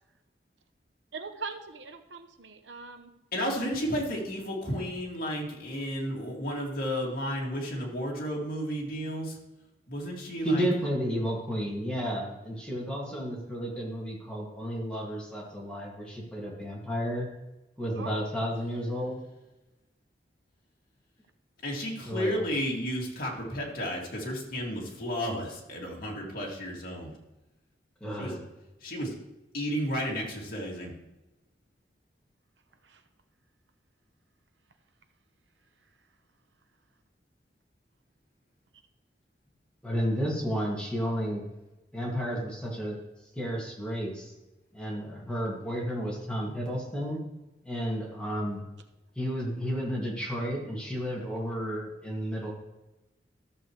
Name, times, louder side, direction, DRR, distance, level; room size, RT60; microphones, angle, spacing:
voice 1, 1.1-3.1 18.0-18.2 32.8-33.0 47.1-47.2, right 4 dB, 80° right, 8 dB, 0.9 m, -41 dB
voice 2, 3.3-9.4 9.9-10.7 21.6-27.1 28.2-28.3 28.8-29.1 29.5-30.9, equal, 55° left, -3 dB, 2.4 m, -32 dB
voice 3, 10.4-17.3 17.8-19.2 22.1-22.4 28.0-28.4 39.8-41.4 41.9-43.0 43.3-44.3 44.7-47.2 47.6-48.6 49.1-52.5, equal, 5° left, -4 dB, 2.2 m, -32 dB
13.5 x 7.2 x 3.2 m, 0.98 s
head